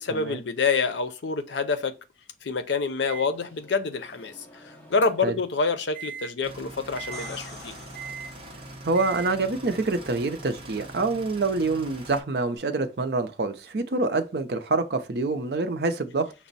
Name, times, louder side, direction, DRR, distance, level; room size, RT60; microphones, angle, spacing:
voice 1, 0.0-2.0 2.4-7.8, left 4 dB, 75° left, 0.6 m, -27 dB
Microwave oven, 3.1-5.4 5.9-6.3 6.9-7.3 7.9-8.3 8.9-9.3, right 6 dB, 10° left, 1.1 m, -41 dB
sound 1, 6.4-12.2, right 1 dB, 30° right, 0.8 m, -43 dB
sound 2, 7.1-8.8 12.6-12.7, left 1 dB, 35° left, 2.6 m, -45 dB
voice 2, 8.8-16.3, right 3 dB, 60° right, 0.5 m, -26 dB
5.9 x 2.1 x 4.0 m
head